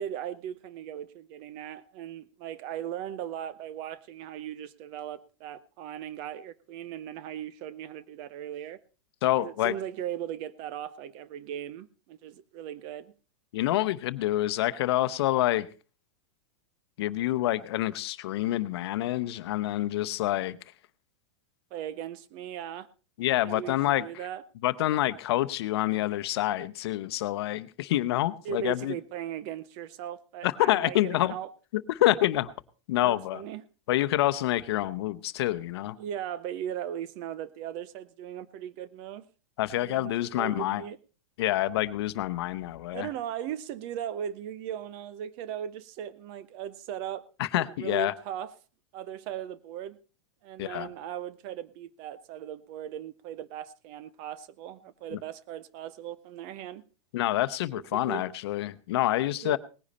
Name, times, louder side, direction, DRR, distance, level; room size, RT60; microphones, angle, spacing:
voice 1, 0.0-8.8 9.4-13.1 21.7-22.9 23.4-24.4 28.4-31.5 33.0-33.6 36.0-39.3 39.8-41.0 42.9-47.3 47.6-48.5 48.9-50.0 50.4-56.8 57.7-58.3 59.4-59.6, right 10 dB, 35° right, 18 dB, 0.6 m, -38 dB
voice 2, 9.2-9.8 13.5-15.7 17.0-20.6 23.2-24.3 24.6-28.9 30.4-31.3 31.9-32.5 32.9-33.4 33.9-36.0 39.6-40.8 41.4-43.1 47.4-48.1 50.6-50.9 55.1-55.2 57.1-59.6, left 15 dB, 55° left, 14 dB, 0.8 m, -27 dB
19.0 x 10.5 x 4.2 m, 0.35 s
supercardioid pair, 170°, 15 cm